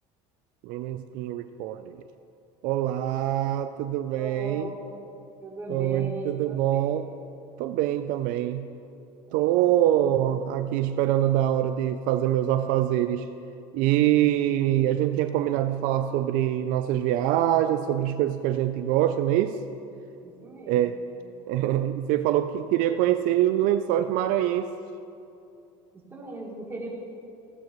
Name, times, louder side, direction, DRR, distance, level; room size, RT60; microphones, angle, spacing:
voice 1, 0.6-2.0 2.6-4.7 5.7-7.1 7.6-8.7 9.3-13.3 13.7-19.6 20.7-21.0 21.5-24.8, right 12 dB, 70° right, 10 dB, 0.4 m, -24 dB
voice 2, 4.2-5.0 5.4-7.0 9.3-10.1 20.2-20.9 25.9-26.9, right 2 dB, 15° right, -5 dB, 3.1 m, -38 dB
16.5 x 12.5 x 3.1 m, 2.7 s
supercardioid pair, 110°, 15 cm